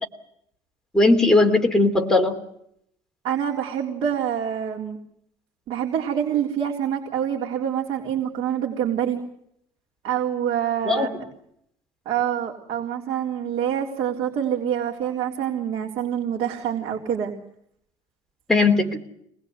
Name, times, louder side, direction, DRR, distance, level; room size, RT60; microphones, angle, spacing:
voice 1, 0.9-2.4 10.9-11.1 18.5-19.0, left 2 dB, 5° left, 2 dB, 3.0 m, -18 dB
voice 2, 3.2-5.0 5.7-9.2 10.0-11.2 12.1-17.3, right 9 dB, 55° right, -1 dB, 3.7 m, -26 dB
25.0 x 20.5 x 8.2 m, 0.72 s
cardioid pair, 165°, 11 cm